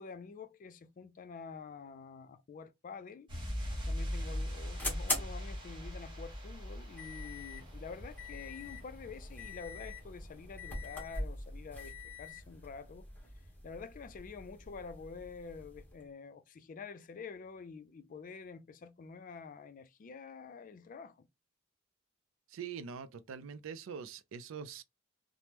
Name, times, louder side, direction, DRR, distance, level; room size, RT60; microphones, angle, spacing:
voice 1, 0.0-3.3 3.9-13.1 13.6-21.3, left 5 dB, 40° left, 0.3 m, -48 dB
sound 1, 3.3-9.8 10.0-10.2, equal, 25° right, 1.0 m, -41 dB
sound 2, 3.6-16.0, left 2 dB, 10° left, 0.9 m, -43 dB
voice 2, 22.5-24.8, right 6 dB, 70° right, 0.4 m, -44 dB
2.9 x 2.0 x 3.3 m
head